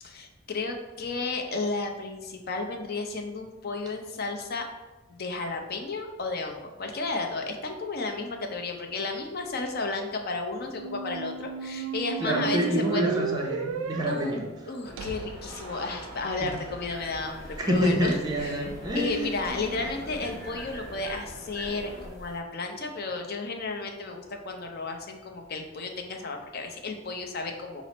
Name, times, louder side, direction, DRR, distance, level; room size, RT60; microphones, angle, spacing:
voice 1, 0.0-4.7 5.1-13.0 14.0-27.8, left 3 dB, 50° left, 3 dB, 0.5 m, -33 dB
sound 1, 10.7-16.6, right 5 dB, 85° right, 0.3 m, -34 dB
voice 2, 12.2-14.5 17.6-19.3, equal, 20° right, 0 dB, 0.6 m, -27 dB
sound 2, 14.8-22.1, equal, 30° left, 1.0 m, -45 dB
sound 3, 16.9-22.4, equal, 5° left, 0.9 m, -44 dB
5.8 x 2.0 x 4.0 m, 1.1 s
head